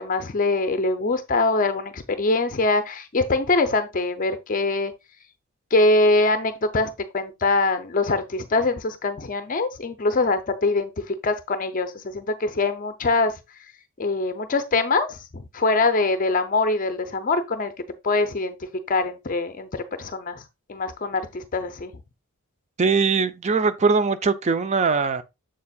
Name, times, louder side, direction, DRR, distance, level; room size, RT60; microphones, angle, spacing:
voice 1, 0.0-4.9 5.7-13.3 14.0-17.7 18.0-20.4 20.7-21.9, left 3 dB, 40° left, 0.5 m, -23 dB
voice 2, 22.8-25.2, right 4 dB, 30° right, 0.5 m, -21 dB
7.4 x 7.0 x 2.3 m
head